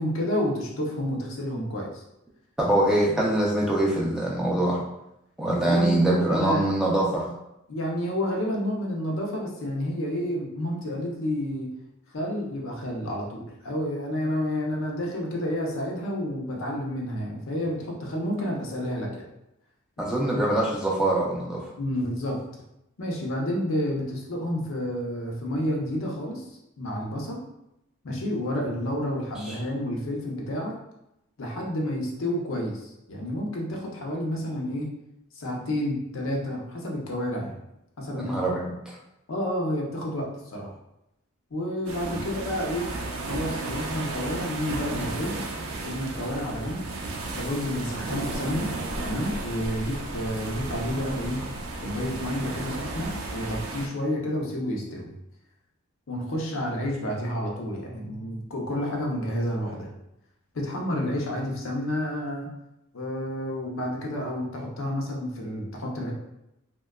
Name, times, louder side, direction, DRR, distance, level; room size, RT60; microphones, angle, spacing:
voice 1, 0.0-2.0 5.6-6.7 7.7-11.7 12.1-19.2 21.8-22.4 23.0-26.5 26.8-27.4 28.0-30.7 31.4-34.9 35.3-37.6 38.0-38.4 39.3-40.7 41.5-42.9 43.3-45.4 45.8-46.8 47.3-48.7 49.0-51.4 51.8-55.1 56.1-59.9 60.5-62.5 62.9-66.1, left 1 dB, 65° left, -1 dB, 0.6 m, -30 dB
voice 2, 2.6-4.8 5.4-7.3 20.0-21.6 29.4-29.5 38.1-39.0 42.1-42.3, right 1 dB, 5° right, -5 dB, 0.3 m, -24 dB
sound 1, 41.9-53.9, right 2 dB, 80° right, 0.4 m, -34 dB
2.7 x 2.2 x 2.2 m, 0.85 s
head